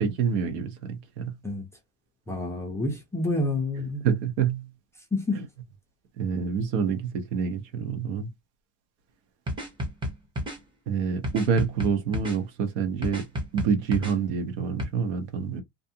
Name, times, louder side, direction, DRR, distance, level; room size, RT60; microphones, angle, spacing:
voice 1, 0.0-1.3 4.0-4.7 5.4-5.5 6.2-8.3 10.9-13.3 13.5-15.6, right 6 dB, 70° right, 1.0 m, -27 dB
voice 2, 2.3-4.0 5.1-5.4, left 2 dB, 10° left, 0.4 m, -28 dB
sound 1, 9.5-10.6 11.2-12.4 13.0-14.1 14.8-14.9, equal, 15° right, 0.7 m, -31 dB
2.5 x 2.3 x 2.7 m
cardioid pair, 165°, 36 cm